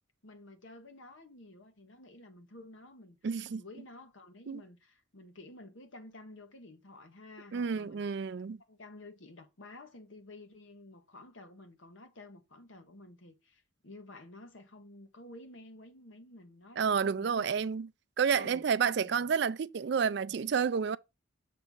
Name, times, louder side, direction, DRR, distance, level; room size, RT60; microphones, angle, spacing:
voice 1, 0.2-3.2 3.5-8.0 8.7-17.6 18.3-18.7 19.0-19.2, left 2 dB, 70° left, 1.2 m, -52 dB
voice 2, 3.2-3.6 4.5-4.6 7.5-8.6 16.8-17.9 18.2-21.0, right 6 dB, 55° right, 0.3 m, -30 dB
6.7 x 3.5 x 5.3 m
head